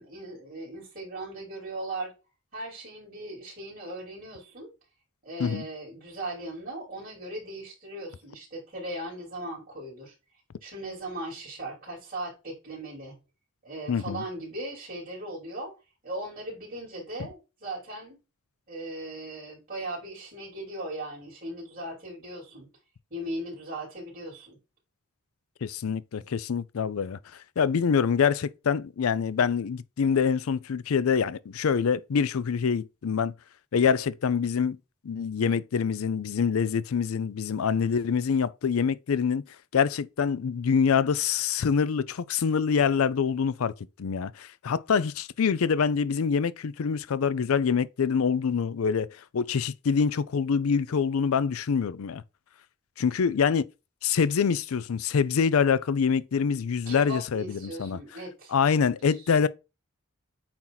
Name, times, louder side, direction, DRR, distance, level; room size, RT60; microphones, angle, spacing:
voice 1, 0.0-2.1 2.5-4.7 5.2-10.1 10.6-13.1 13.6-15.7 16.0-18.2 18.7-22.7 23.1-24.6 56.9-58.5 59.0-59.1, right 1 dB, 40° right, 3.6 m, -38 dB
voice 2, 13.9-14.2 25.6-27.2 27.6-33.3 33.7-34.8 35.0-39.4 39.7-43.7 44.0-52.2 53.0-53.7 54.0-58.0 58.5-59.5, left 6 dB, 75° left, 0.4 m, -25 dB
8.7 x 2.9 x 3.9 m
head